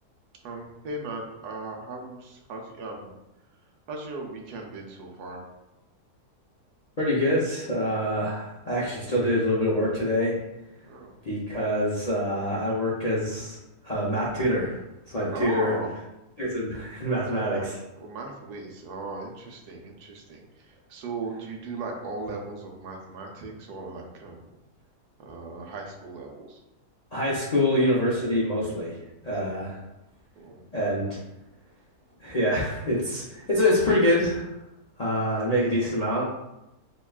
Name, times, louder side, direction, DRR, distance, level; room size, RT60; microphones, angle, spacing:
voice 1, 0.4-3.1 3.9-5.4 10.8-11.1 15.3-15.9 17.3-17.7 18.0-24.5 25.2-26.6 29.3-29.6 30.4-30.6, right 3 dB, 80° right, 0 dB, 1.2 m, -37 dB
voice 2, 7.0-10.4 11.2-13.6 13.8-14.8 15.1-15.7 16.4-17.8 27.1-29.0 29.2-29.8 30.7-31.2 32.2-34.5 35.0-36.2, left 1 dB, 50° left, -7 dB, 0.5 m, -25 dB
6.2 x 2.2 x 2.3 m, 0.95 s
omnidirectional pair, 1.6 m